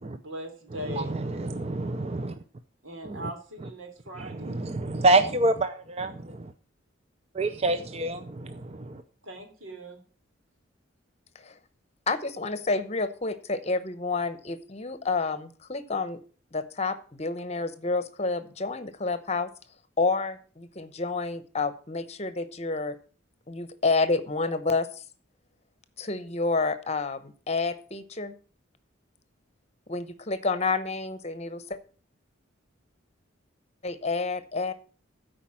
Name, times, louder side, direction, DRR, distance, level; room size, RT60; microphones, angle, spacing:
voice 1, 0.1-1.2 2.8-4.6 9.2-10.0, equal, 85° right, 4 dB, 3.1 m, -40 dB
voice 2, 0.9-2.3 3.1-3.2 4.4-6.1 7.4-8.6 8.9-9.0, right 2 dB, 30° right, 9 dB, 0.6 m, -26 dB
voice 3, 12.1-16.2 16.5-19.5 20.0-23.0 23.5-24.9 26.0-28.3 29.9-31.8 33.8-34.7, left 3 dB, 30° left, 12 dB, 0.9 m, -29 dB
13.0 x 5.1 x 7.4 m, 0.40 s
head